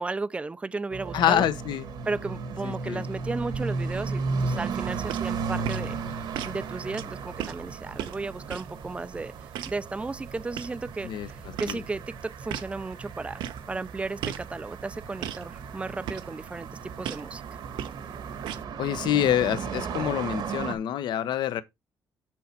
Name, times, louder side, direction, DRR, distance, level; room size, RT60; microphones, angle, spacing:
voice 1, 0.0-1.5 2.1-6.0 6.4-9.3 9.7-17.4, right 3 dB, 15° right, 0.5 m, -34 dB
sound 1, 0.9-20.7, right 4 dB, 70° right, 1.5 m, -35 dB
voice 2, 1.1-1.9 2.6-3.0 11.0-11.3 11.7-11.8 18.8-21.6, left 11 dB, 70° left, 0.9 m, -26 dB
sound 2, 4.9-18.6, right 10 dB, 85° right, 0.9 m, -40 dB
7.1 x 6.3 x 4.3 m
cardioid pair, 140°, 8 cm